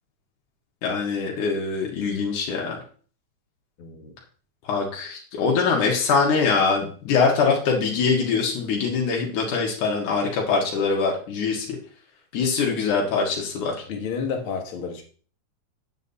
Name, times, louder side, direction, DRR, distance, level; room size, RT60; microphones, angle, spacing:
voice 1, 0.8-2.8 4.7-11.8 12.3-13.8, left 5 dB, 90° left, 3.1 m, -23 dB
voice 2, 3.8-4.1 13.9-15.0, left 6 dB, 50° left, 2.0 m, -30 dB
9.2 x 7.4 x 4.1 m
omnidirectional pair, 3.5 m